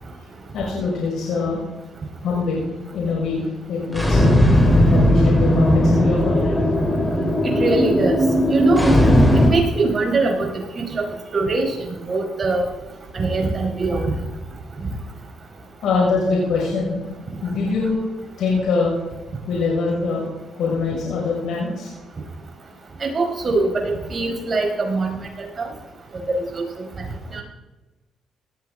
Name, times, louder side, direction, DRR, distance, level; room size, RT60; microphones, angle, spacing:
voice 1, 0.5-1.6 2.2-4.4 4.9-6.6 15.8-17.0 17.4-18.0 18.4-18.9 19.5-20.3 20.6-21.9, left 4 dB, 80° left, -4 dB, 5.7 m, -23 dB
sound 1, 3.9-9.5, equal, 10° left, 3.7 m, -16 dB
voice 2, 7.6-8.2 8.5-9.0 9.3-10.8 11.3-12.6 13.1-14.2 23.0-25.2 25.6-25.7 26.3-26.6 27.3-27.4, right 3 dB, 40° right, 1 dB, 4.6 m, -22 dB
19.0 x 14.0 x 3.8 m, 1.1 s
cardioid pair, 90°, 0 cm